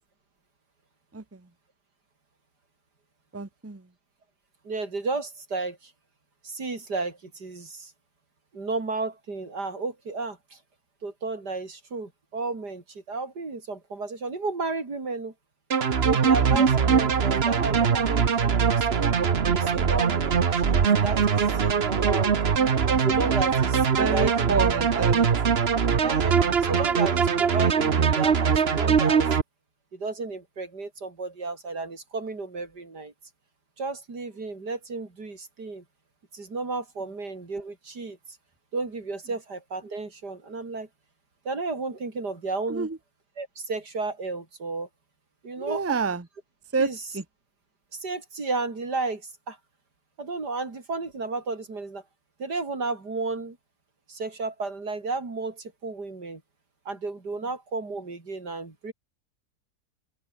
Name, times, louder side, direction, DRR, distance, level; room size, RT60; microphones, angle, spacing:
voice 1, 1.1-1.5 3.3-3.9 16.5-16.7 21.9-22.3 24.0-25.3 42.7-43.0 45.6-46.3 46.7-46.9 47.1-47.2, right 4 dB, 10° right, 1.0 m, -28 dB
voice 2, 4.6-5.9 6.4-7.9 8.5-10.6 11.0-15.3 16.0-19.1 19.5-22.5 23.0-24.6 24.9-25.1 26.0-29.3 29.9-33.1 33.8-35.8 36.3-38.2 38.7-40.9 41.4-42.9 43.4-44.9 45.4-46.0 46.8-47.0 47.9-49.6 50.2-52.0 52.4-53.6 54.1-56.4 56.9-58.9, right 3 dB, 85° right, 4.7 m, -33 dB
sound 1, 15.7-29.4, right 6 dB, 40° right, 1.3 m, -22 dB
open air
omnidirectional pair, 1.7 m